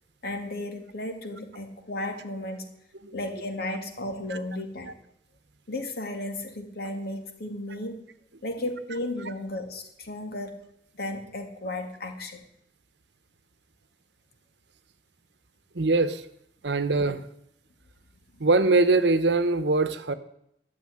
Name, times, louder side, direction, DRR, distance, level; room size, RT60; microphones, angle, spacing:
voice 1, 0.2-2.7 3.1-4.9 5.7-8.0 8.4-10.5 11.0-12.4, left 1 dB, 60° left, 5 dB, 2.2 m, -34 dB
voice 2, 15.7-16.2 16.6-17.2 18.4-20.1, right 3 dB, 75° right, 12 dB, 1.0 m, -22 dB
12.0 x 7.3 x 9.8 m, 0.76 s
head